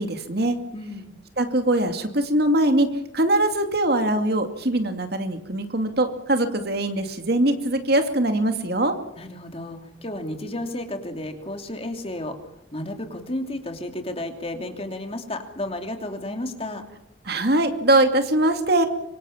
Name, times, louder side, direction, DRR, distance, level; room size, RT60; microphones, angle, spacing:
voice 1, 0.0-0.6 1.4-9.0 17.3-18.9, right 1 dB, 55° right, 7 dB, 2.5 m, -22 dB
voice 2, 0.7-1.2 9.2-12.4 12.7-16.8, left 1 dB, 30° left, 5 dB, 2.9 m, -32 dB
25.5 x 24.0 x 7.3 m, 0.83 s
head